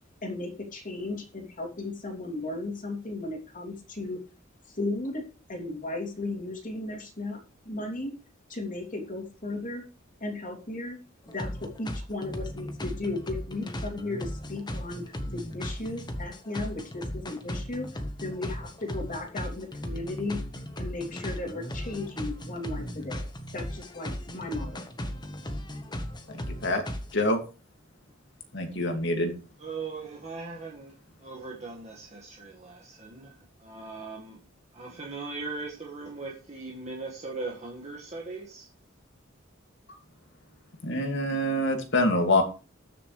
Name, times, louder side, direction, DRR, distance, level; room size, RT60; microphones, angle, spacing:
voice 1, 0.2-4.2 4.7-5.2 5.5-7.4 7.6-8.1 8.5-9.8 10.2-11.0 11.3-15.0 15.3-17.9 18.2-20.4 20.8-23.3 23.5-24.9, left 2 dB, 40° left, 3.0 m, -35 dB
sound 1, 11.3-27.1, equal, 20° left, 1.3 m, -36 dB
voice 2, 26.3-26.8 27.1-27.4 28.5-29.3 40.8-42.4, left 1 dB, 65° left, 2.4 m, -25 dB
voice 3, 29.6-30.9 31.2-33.3 33.6-34.4 34.7-38.7, right 3 dB, 35° right, 1.7 m, -39 dB
20.0 x 6.8 x 3.3 m
head